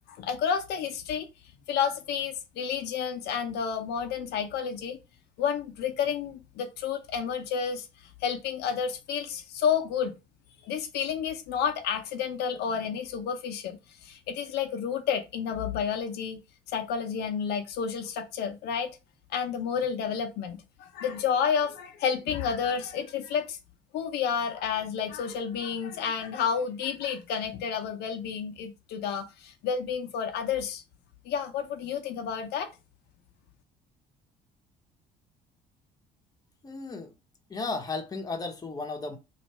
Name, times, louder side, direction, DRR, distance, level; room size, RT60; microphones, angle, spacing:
voice 1, 0.1-1.3 1.7-5.0 5.4-7.9 8.2-10.1 10.6-16.4 16.7-19.0 19.3-23.6 23.9-30.8 31.2-32.7, left 7 dB, 80° left, 0.7 m, -30 dB
voice 2, 36.6-37.1 37.5-39.2, left 3 dB, 20° left, 0.9 m, -34 dB
3.1 x 2.5 x 4.4 m
cardioid pair, 110°, 17 cm